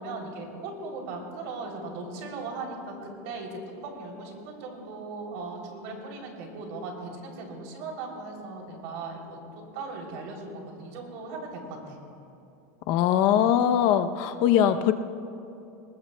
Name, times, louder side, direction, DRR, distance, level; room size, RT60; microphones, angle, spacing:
voice 1, 0.0-9.4 9.7-12.0, right 3 dB, 55° right, 1 dB, 3.0 m, -38 dB
voice 2, 12.9-14.9, left 10 dB, 45° left, 10 dB, 0.6 m, -21 dB
20.5 x 20.0 x 2.2 m, 2.8 s
supercardioid pair, 155°, 9 cm